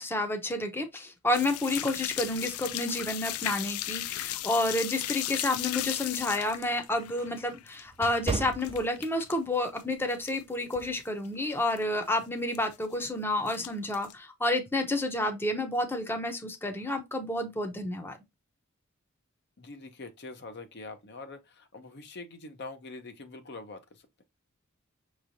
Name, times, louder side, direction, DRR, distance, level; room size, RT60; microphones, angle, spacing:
voice 1, 0.0-18.2, left 1 dB, 10° left, 0.8 m, -30 dB
sound 1, 1.3-9.3 9.6-10.4 10.7-10.8 11.3-11.4 11.5-11.8 12.6-13.1 13.5-14.1, left 14 dB, 85° left, 0.4 m, -36 dB
sound 2, 5.8-9.5 9.9-10.1 10.7-11.0, right 3 dB, 25° right, 0.4 m, -37 dB
voice 2, 19.6-24.2, left 3 dB, 55° left, 0.8 m, -44 dB
6.0 x 3.1 x 2.7 m
head